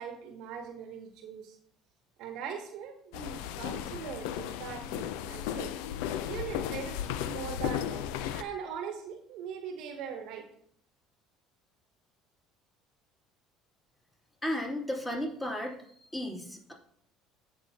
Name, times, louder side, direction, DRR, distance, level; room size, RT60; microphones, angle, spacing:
voice 1, 0.0-1.6 2.2-5.7 6.3-10.5, right 7 dB, 65° right, 6 dB, 1.0 m, -41 dB
sound 1, 3.1-8.4, left 10 dB, 70° left, 0.5 m, -35 dB
voice 2, 14.4-15.8 16.1-16.7, left 1 dB, 15° left, -2 dB, 2.8 m, -34 dB
14.5 x 5.3 x 2.8 m, 0.66 s
hypercardioid pair, 65°, 0 cm